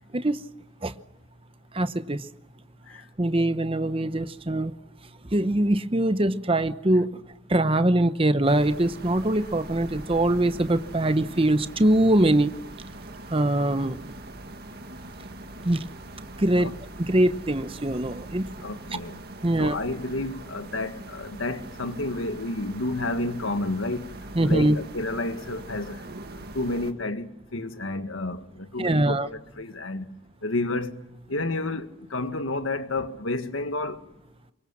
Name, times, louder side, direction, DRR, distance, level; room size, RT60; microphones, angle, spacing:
voice 1, 1.7-2.3 3.2-4.7 5.2-7.2 7.5-12.5 13.3-14.0 15.6-15.8 16.4-16.7 17.0-18.4 19.4-19.8 24.3-24.8 28.8-29.3, right 1 dB, 25° right, 0.9 m, -23 dB
sound 1, 8.4-26.9, right 1 dB, 50° right, 2.0 m, -42 dB
voice 2, 18.6-19.2 19.6-24.1 24.4-26.1 26.3-30.1 30.4-34.0, left 2 dB, 85° left, 1.8 m, -30 dB
25.0 x 22.5 x 7.4 m
head